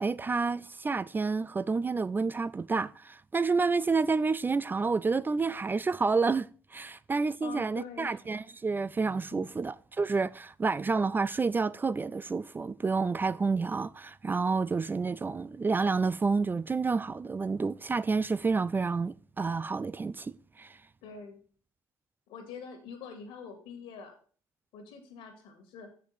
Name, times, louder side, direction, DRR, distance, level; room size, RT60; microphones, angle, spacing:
voice 1, 0.0-20.8, right 4 dB, 20° right, 0.3 m, -29 dB
voice 2, 7.4-8.2 9.3-9.5 21.0-21.4 22.3-24.2 24.7-25.9, left 6 dB, 75° left, 2.2 m, -45 dB
6.9 x 6.0 x 5.8 m
supercardioid pair, 70°, 9 cm